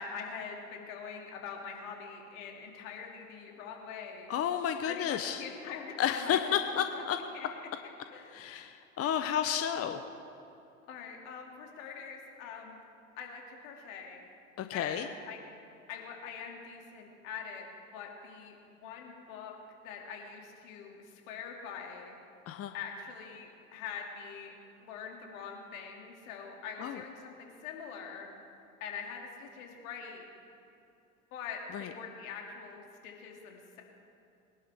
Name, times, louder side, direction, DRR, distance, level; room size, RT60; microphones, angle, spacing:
voice 1, 0.0-4.3 4.9-6.4 6.9-7.0 7.3-7.5 8.1-8.3 10.9-12.8 13.2-14.3 14.7-15.4 15.9-19.5 19.8-22.2 22.7-24.5 24.8-28.3 28.8-30.3 31.3-33.8, left 6 dB, 70° left, 0 dB, 2.7 m, -43 dB
voice 2, 4.3-5.4 6.0-7.2 8.3-10.0 14.6-15.1 22.5-22.7 26.8-27.0 31.7-31.9, left 9 dB, 35° left, 7 dB, 0.8 m, -31 dB
22.5 x 11.5 x 3.6 m, 2.7 s
hypercardioid pair, 80°, 41 cm